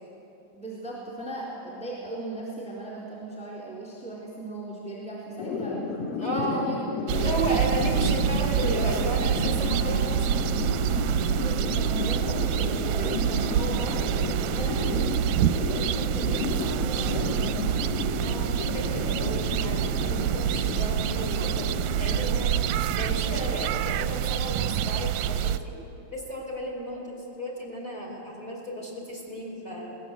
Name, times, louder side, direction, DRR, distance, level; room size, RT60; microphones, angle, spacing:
voice 1, 0.5-5.8 6.2-7.3 11.3-14.1 14.5-17.9, right 1 dB, ahead, -6 dB, 3.5 m, -37 dB
sound 1, 5.4-24.9, left 3 dB, 60° left, 2.5 m, -32 dB
voice 2, 6.2-6.7 7.1-10.2 13.0-13.1 13.3-13.6 18.2-22.5 23.0-25.7 26.1-29.9, right 1 dB, 15° left, -2 dB, 4.6 m, -33 dB
sound 2, 7.1-25.6, right 10 dB, 75° right, 1.8 m, -27 dB
21.0 x 18.5 x 8.1 m, 2.8 s
omnidirectional pair, 3.4 m